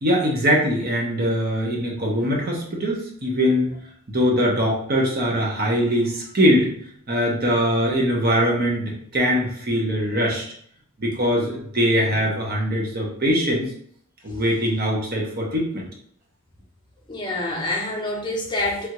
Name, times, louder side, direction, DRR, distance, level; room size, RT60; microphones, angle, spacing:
voice 1, 0.0-3.7 4.1-6.7 7.1-10.4 11.0-13.7 14.2-15.9, equal, 45° right, -2 dB, 0.8 m, -22 dB
voice 2, 17.1-18.9, left 1 dB, 20° left, -3 dB, 0.7 m, -27 dB
3.3 x 2.4 x 2.9 m, 0.63 s
head